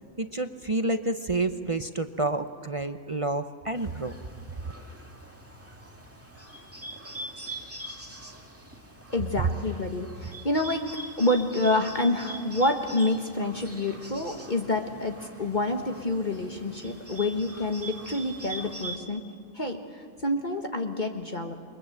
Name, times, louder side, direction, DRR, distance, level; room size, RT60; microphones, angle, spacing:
voice 1, 0.2-4.1, right 2 dB, 35° right, 9 dB, 0.5 m, -29 dB
Bird, 3.7-19.0, right 1 dB, 10° right, 2.0 m, -43 dB
voice 2, 9.1-10.8 11.2-19.2 19.5-21.5, left 2 dB, 30° left, 4 dB, 1.5 m, -28 dB
28.5 x 23.0 x 7.8 m, 2.2 s
omnidirectional pair, 1.6 m